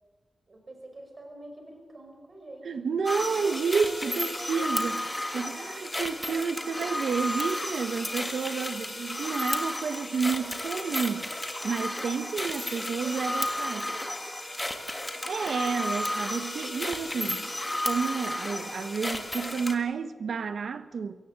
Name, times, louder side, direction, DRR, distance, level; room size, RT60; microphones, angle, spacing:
voice 1, 0.5-5.0 12.8-14.2, right 1 dB, 35° right, 5.2 m, -48 dB
voice 2, 2.6-5.0 5.3-11.2 11.6-13.8 15.3-17.5 17.9-21.2, right 5 dB, 75° right, 1.2 m, -30 dB
sound 1, 3.1-19.8, left 1 dB, 10° left, 1.7 m, -33 dB
23.0 x 17.5 x 8.3 m
wide cardioid pair, 175°, 0 cm